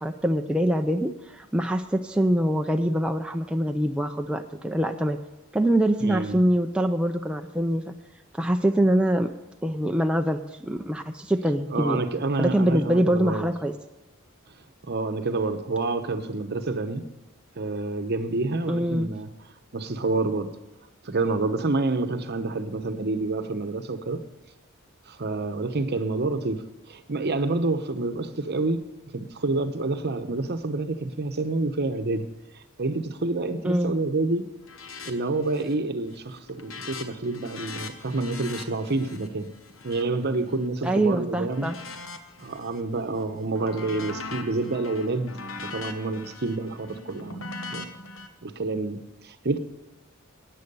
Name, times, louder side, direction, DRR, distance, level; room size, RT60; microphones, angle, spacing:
voice 1, 0.0-5.2 5.5-8.0 8.3-9.3 9.6-12.0 12.4-13.8 18.7-19.1 33.6-33.9 40.8-41.8, right 1 dB, 5° right, 0.4 m, -24 dB
voice 2, 6.0-6.4 11.7-13.5 14.9-17.0 17.6-19.3 19.7-20.5 21.0-24.2 25.1-26.6 26.9-28.8 29.1-32.3 32.8-34.5 35.1-39.5 39.8-41.7 42.4-45.4 45.7-47.5 47.7-47.9 48.4-49.6, right 3 dB, 50° right, 0.9 m, -28 dB
sound 1, 34.6-35.1 35.4-35.9 36.2-41.0 41.5-42.8 43.2-48.3, left 3 dB, 70° left, 1.2 m, -40 dB
13.5 x 9.4 x 5.5 m
head